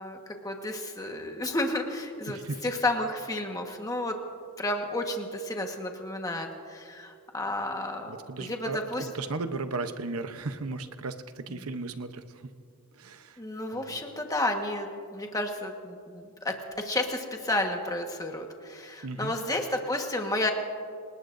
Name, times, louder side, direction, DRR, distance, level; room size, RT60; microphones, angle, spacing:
voice 1, 0.0-4.2 4.6-9.0 11.5-11.6 13.4-20.5, left 1 dB, 15° left, 3 dB, 1.4 m, -32 dB
voice 2, 2.3-2.6 8.1-12.5 12.9-13.4 13.7-14.0 19.0-19.3, right 3 dB, 85° right, 9 dB, 0.9 m, -36 dB
27.5 x 19.0 x 2.6 m, 2.3 s
head